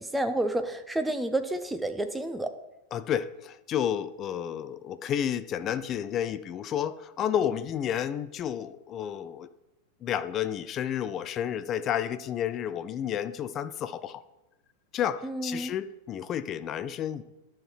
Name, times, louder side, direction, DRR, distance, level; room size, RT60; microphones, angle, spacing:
voice 1, 0.0-2.5 15.2-15.7, right 1 dB, 5° right, 8 dB, 0.6 m, -30 dB
voice 2, 2.9-9.5 10.0-14.2 14.9-17.2, left 9 dB, 30° left, 14 dB, 0.4 m, -31 dB
11.0 x 5.6 x 3.2 m, 1.0 s
figure-of-eight pair, 90°, 0 cm